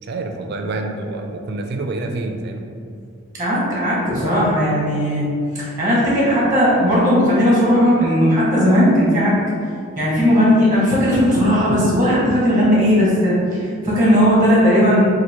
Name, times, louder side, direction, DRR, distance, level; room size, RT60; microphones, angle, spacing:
voice 1, 0.0-2.7, right 2 dB, 55° right, 4 dB, 0.4 m, -27 dB
voice 2, 3.3-5.2 5.5-9.3 10.0-15.0, equal, 15° right, -7 dB, 0.9 m, -16 dB
3.0 x 2.5 x 4.1 m, 2.4 s
head